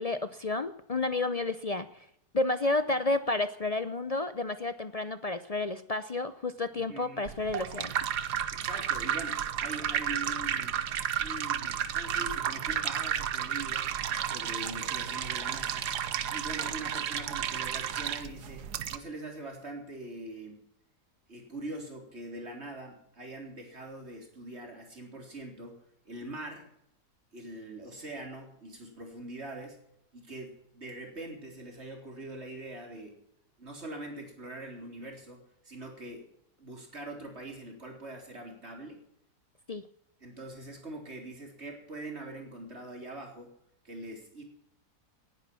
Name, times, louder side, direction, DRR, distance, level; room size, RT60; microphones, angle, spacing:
voice 1, 0.0-2.1 2.3-7.9 39.7-39.8, left 2 dB, 60° left, 12 dB, 0.4 m, -31 dB
voice 2, 6.9-7.2 8.5-10.8 11.2-14.0 14.2-16.0 16.3-20.6 21.3-25.8 26.0-26.7 27.3-29.8 30.1-33.2 33.6-36.3 36.6-39.0 40.2-43.5 43.8-44.4, right 2 dB, 40° right, 2 dB, 4.1 m, -43 dB
sound 1, 7.3-19.0, right 9 dB, 80° right, 1.5 m, -32 dB
18.5 x 10.5 x 6.1 m, 0.73 s
omnidirectional pair, 1.7 m